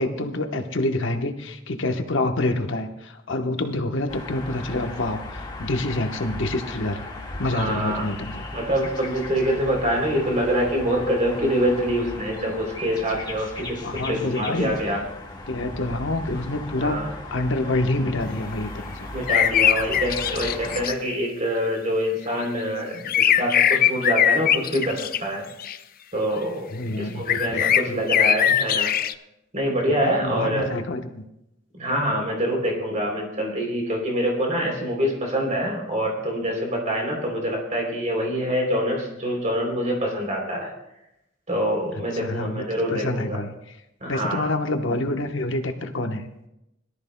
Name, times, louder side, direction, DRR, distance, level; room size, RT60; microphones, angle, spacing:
voice 1, 0.0-7.0 7.4-8.4 13.7-14.7 15.5-17.0 17.3-19.1 26.7-28.0 29.8-31.2 42.2-43.5 44.1-46.3, left 2 dB, 65° left, 6 dB, 1.1 m, -27 dB
sound 1, 4.1-20.9, left 2 dB, 20° left, 1.7 m, -37 dB
voice 2, 7.5-8.1 8.5-15.0 16.8-17.1 19.1-25.4 26.1-26.6 27.0-28.9 29.5-30.7 31.7-40.7 41.5-43.4 44.0-44.5, equal, 40° right, 0 dB, 3.3 m, -25 dB
sound 2, 19.3-20.9 23.0-25.2 25.6-25.8 27.3-29.1, left 9 dB, 45° left, 0.5 m, -21 dB
21.5 x 13.0 x 2.2 m, 0.86 s
head